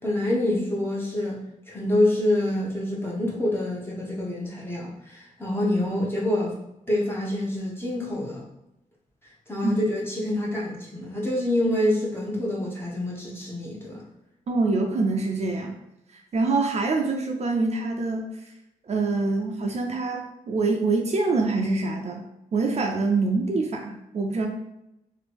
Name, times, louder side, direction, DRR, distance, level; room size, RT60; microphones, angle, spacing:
voice 1, 0.0-1.4 1.7-6.5 6.9-8.4 9.5-14.0, left 1 dB, 15° left, -5 dB, 1.0 m, -26 dB
voice 2, 14.5-15.8 16.1-18.3 18.9-22.2 22.5-24.5, right 3 dB, 50° right, 2 dB, 0.4 m, -25 dB
3.0 x 2.5 x 3.4 m, 0.86 s
wide cardioid pair, 135°, 14 cm